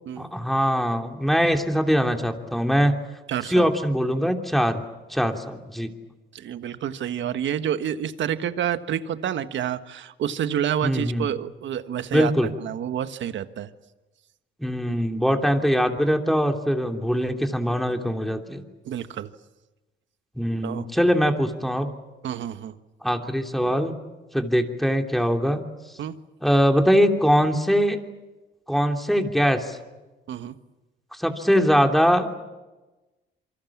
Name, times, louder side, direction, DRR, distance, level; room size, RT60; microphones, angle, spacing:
voice 1, 0.2-2.9 3.5-4.8 5.1-5.9 10.8-11.3 12.1-12.5 14.6-18.6 20.4-21.9 23.0-23.9 24.3-25.6 26.4-28.0 28.7-29.8 31.1-32.3, equal, ahead, 4 dB, 3.0 m, -22 dB
voice 2, 3.3-3.7 6.3-12.3 12.6-13.7 18.8-19.3 20.6-20.8 22.2-22.8 26.0-26.2 30.3-30.6, right 9 dB, 70° right, 10 dB, 1.5 m, -28 dB
27.5 x 24.5 x 7.3 m, 1.1 s
cardioid pair, 90°, 20 cm